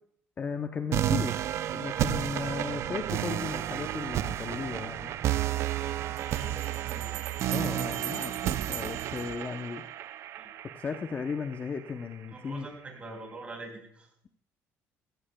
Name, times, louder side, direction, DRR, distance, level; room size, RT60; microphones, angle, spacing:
voice 1, 0.4-5.1 7.5-9.9 10.7-12.7, left 5 dB, 30° left, 6 dB, 0.7 m, -36 dB
sound 1, 0.9-11.9, right 12 dB, 55° right, 0.4 m, -32 dB
Bell, 6.2-10.1, right 13 dB, 90° right, 0.9 m, -41 dB
voice 2, 6.3-7.2 10.4-10.5 12.3-14.1, right 2 dB, 25° right, 2 dB, 4.2 m, -44 dB
16.5 x 15.0 x 2.2 m, 0.69 s
cardioid pair, 125°, 5 cm